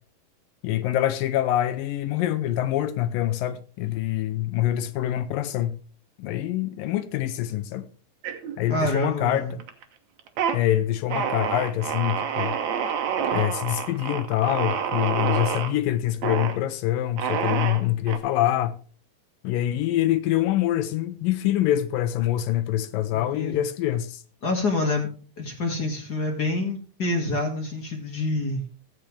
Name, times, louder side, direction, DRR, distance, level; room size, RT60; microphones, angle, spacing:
voice 1, 0.6-5.8 6.2-7.9 8.6-9.6 10.5-12.6 13.3-18.8 19.4-24.2, left 13 dB, 75° left, 2.4 m, -25 dB
sound 1, 8.2-9.0 9.3-9.8 10.2-10.6 11.1-15.7 16.2-16.6 17.2-18.2, right 7 dB, 65° right, 2.0 m, -28 dB
voice 2, 8.7-9.5 23.1-23.6 24.4-25.1 25.4-28.6, left 2 dB, 35° left, 1.7 m, -27 dB
15.5 x 8.8 x 3.3 m
omnidirectional pair, 4.2 m